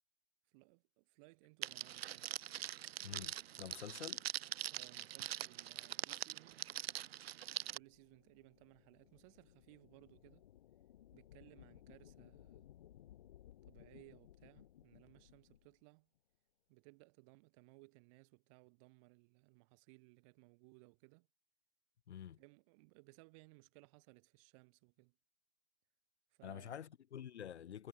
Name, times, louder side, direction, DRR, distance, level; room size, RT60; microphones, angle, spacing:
voice 1, 0.5-2.3 4.7-6.8 7.7-10.5 11.1-12.7 13.7-16.1 16.7-21.3 22.4-25.2 26.3-26.8, right 30 dB, 25° right, 1.3 m, -63 dB
Crackle, 1.6-7.8, right 12 dB, 55° right, 0.5 m, -43 dB
voice 2, 3.0-4.2 22.1-22.4 26.4-27.9, left 9 dB, 65° left, 1.2 m, -48 dB
sound 1, 7.7-15.7, left 12 dB, 40° left, 0.5 m, -62 dB
hypercardioid pair, 140°, 36 cm